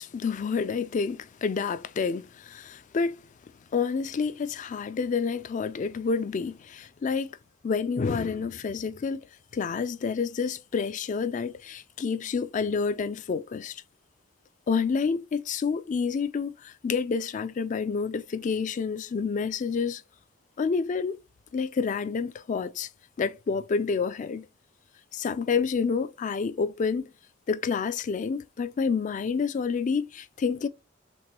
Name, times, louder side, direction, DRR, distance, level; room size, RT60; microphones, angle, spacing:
voice 1, 0.0-3.2 3.7-7.4 7.6-9.2 9.5-13.8 14.7-20.0 20.6-21.2 21.5-22.9 23.2-24.5 25.1-27.1 27.5-30.7, left 5 dB, 40° left, 0.3 m, -28 dB
6.0 x 2.2 x 3.0 m
head